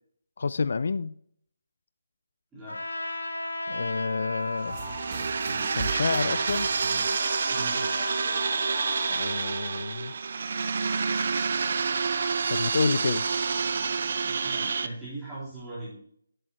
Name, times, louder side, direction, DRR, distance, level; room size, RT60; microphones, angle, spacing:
voice 1, 0.4-1.2 3.7-4.8 5.8-6.7 9.1-10.1 12.5-13.2, left 4 dB, 60° left, 16 dB, 0.4 m, -29 dB
Trumpet, 2.7-9.3, left 2 dB, 85° left, 1.5 m, -37 dB
sound 1, 4.6-14.9, right 5 dB, 55° right, 0.6 m, -28 dB
sound 2, 4.7-9.8, right 6 dB, 25° right, 1.0 m, -40 dB
voice 2, 7.5-7.9 14.2-16.0, right 2 dB, 10° right, -11 dB, 3.7 m, -39 dB
11.0 x 7.9 x 3.0 m, 0.65 s
figure-of-eight pair, 155°, 0 cm